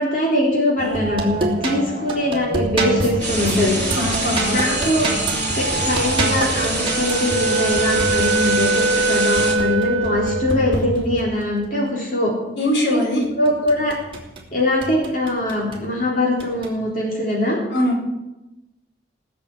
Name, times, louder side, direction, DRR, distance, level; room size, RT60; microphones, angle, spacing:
voice 1, 0.0-3.8 4.5-5.1 5.6-12.3 12.9-13.0 13.4-13.9 14.5-17.6, left 1 dB, 45° left, -4 dB, 3.8 m, -22 dB
sound 1, 0.8-11.4 13.2-14.4 14.8-15.8 16.4-16.7, right 2 dB, 30° right, 2.9 m, -27 dB
sound 2, 3.2-9.5, right 1 dB, 10° left, 5.8 m, -26 dB
voice 2, 3.9-4.8 12.6-13.2 17.7-18.0, left 1 dB, 80° left, -2 dB, 5.0 m, -21 dB
Wind instrument woodwind instrument, 6.6-10.6, right 3 dB, 75° right, 0.9 m, -22 dB
18.0 x 6.9 x 8.5 m, 0.97 s
head